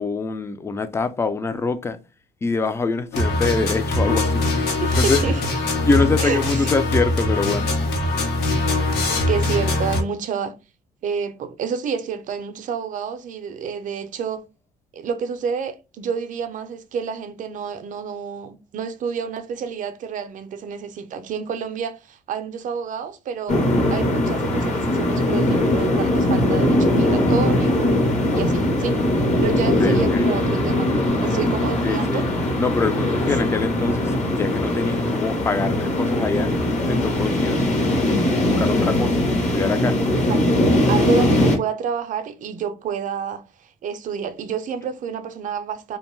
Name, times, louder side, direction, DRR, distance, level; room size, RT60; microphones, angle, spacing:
voice 1, 0.0-2.0 2.4-5.3 5.8-7.7 29.8-30.3 31.8-32.3 32.6-36.5 36.9-37.9 38.4-40.0, left 4 dB, 15° left, 0.3 m, -25 dB
sound 1, 3.1-10.0, left 2 dB, 75° left, 0.8 m, -22 dB
voice 2, 4.8-5.4 6.2-6.4 9.1-10.5 11.0-14.5 14.9-23.6 23.9-28.0 28.4-29.0 29.4-32.3 33.0-33.1 40.1-40.2 40.9-46.0, right 6 dB, 50° right, 0.5 m, -29 dB
sound 2, 23.5-41.6, left 1 dB, 40° left, 0.8 m, -20 dB
2.5 x 2.2 x 3.0 m
cardioid pair, 110°, 17 cm